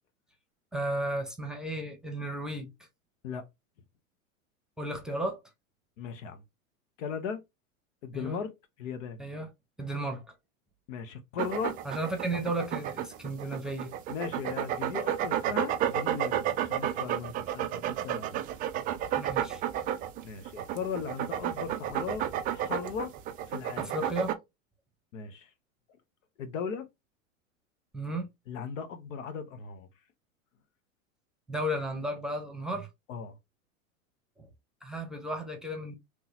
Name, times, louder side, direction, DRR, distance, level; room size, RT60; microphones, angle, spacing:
voice 1, 0.7-2.7 4.8-5.4 8.1-8.4 9.2-9.5 9.8-10.2 11.8-13.9 19.1-19.6 23.8-24.4 27.9-28.3 31.5-32.9 34.4-34.5 34.8-36.0, right 1 dB, ahead, 0.9 m, -34 dB
voice 2, 6.0-6.4 7.0-7.4 8.0-8.5 8.8-9.2 10.9-11.8 14.1-18.4 20.2-22.3 22.5-23.1 23.5-23.9 25.1-25.5 26.4-26.9 28.5-29.9 33.1-33.3, left 6 dB, 65° left, 1.0 m, -37 dB
sound 1, 11.4-24.3, right 11 dB, 25° right, 0.3 m, -31 dB
3.6 x 3.0 x 2.8 m
hypercardioid pair, 105°, 41 cm